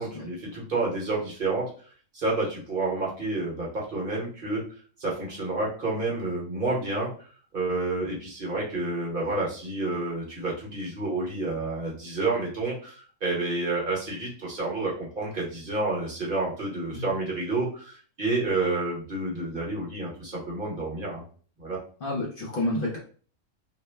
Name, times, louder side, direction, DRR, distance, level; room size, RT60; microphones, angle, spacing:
voice 1, 0.0-1.7 2.1-4.6 5.0-7.1 7.5-21.2 21.6-21.8, right 2 dB, 45° right, -4 dB, 1.1 m, -29 dB
voice 2, 22.0-23.0, left 1 dB, 50° left, -3 dB, 0.7 m, -30 dB
2.9 x 2.1 x 3.2 m, 0.42 s
omnidirectional pair, 1.3 m